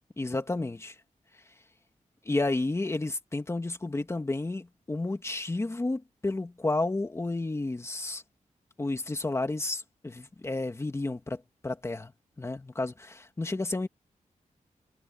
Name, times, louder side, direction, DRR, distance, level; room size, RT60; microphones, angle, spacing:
voice 1, 0.2-1.0 2.2-8.2 8.8-12.1 12.4-13.9, left 2 dB, 20° left, 2.2 m, -31 dB
wide cardioid pair, 150°, 13 cm